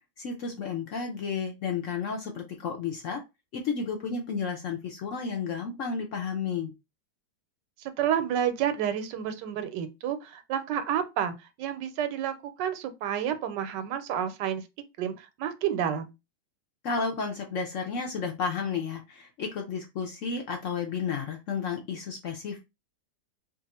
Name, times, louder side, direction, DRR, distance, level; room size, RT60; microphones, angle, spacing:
voice 1, 0.2-3.2 3.5-6.7 16.8-22.6, left 5 dB, 65° left, 0.8 m, -32 dB
voice 2, 7.8-14.6 15.0-16.1, right 9 dB, 80° right, 1.2 m, -30 dB
2.9 x 2.5 x 4.1 m
omnidirectional pair, 1.9 m